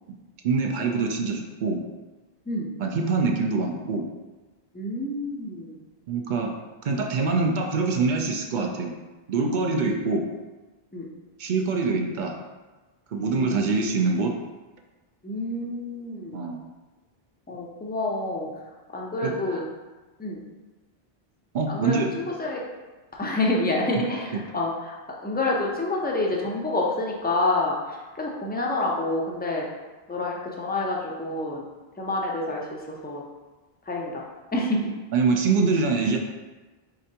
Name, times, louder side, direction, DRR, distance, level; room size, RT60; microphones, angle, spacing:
voice 1, 0.4-1.8 2.8-4.0 6.1-6.5 6.8-8.9 9.3-10.2 11.4-12.4 13.1-14.3 16.3-16.6 19.2-19.4 21.5-22.2 35.1-36.2, right 4 dB, 60° right, 2 dB, 0.6 m, -24 dB
voice 2, 4.7-5.8 9.7-9.8 10.9-11.1 13.2-13.7 15.2-16.4 17.5-18.5 18.9-19.7 20.2-20.4 21.7-22.7 23.2-29.7 30.1-31.6 32.0-33.2 33.9-34.2 34.5-34.9, left 2 dB, 15° left, -2 dB, 0.4 m, -28 dB
5.0 x 3.3 x 2.8 m, 1.2 s
omnidirectional pair, 1.0 m